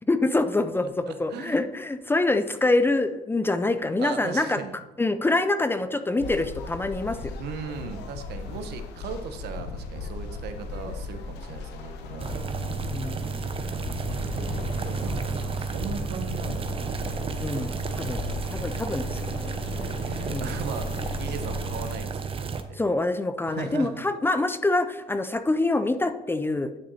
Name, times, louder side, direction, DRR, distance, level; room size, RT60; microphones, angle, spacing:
voice 1, 0.1-4.6 5.0-7.4 12.9-13.5 17.4-18.2 18.5-19.5 20.3-20.5 22.7-26.7, left 2 dB, 15° left, 10 dB, 0.5 m, -25 dB
voice 2, 1.3-1.6 4.0-4.7 7.4-12.3 14.1-17.2 19.9-22.8 23.5-24.0, right 6 dB, 75° right, 7 dB, 1.1 m, -38 dB
sound 1, 6.2-22.0, left 4 dB, 85° left, 1.0 m, -37 dB
sound 2, 12.2-22.6, right 5 dB, 35° right, 0.8 m, -32 dB
9.8 x 6.0 x 4.2 m, 1.1 s
cardioid pair, 110°, 17 cm